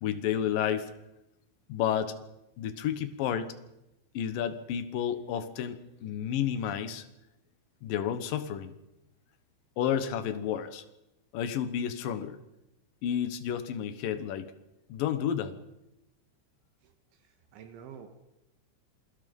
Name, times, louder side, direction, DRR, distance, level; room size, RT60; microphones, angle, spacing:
voice 1, 0.0-0.9 1.7-2.1 2.6-3.5 4.1-7.1 7.8-8.7 9.8-10.9 11.3-12.4 13.0-14.5 14.9-15.6, left 9 dB, 70° left, 10 dB, 2.1 m, -31 dB
voice 2, 16.8-18.1, right 8 dB, 75° right, 7 dB, 3.6 m, -49 dB
28.0 x 21.0 x 5.4 m, 0.91 s
omnidirectional pair, 5.8 m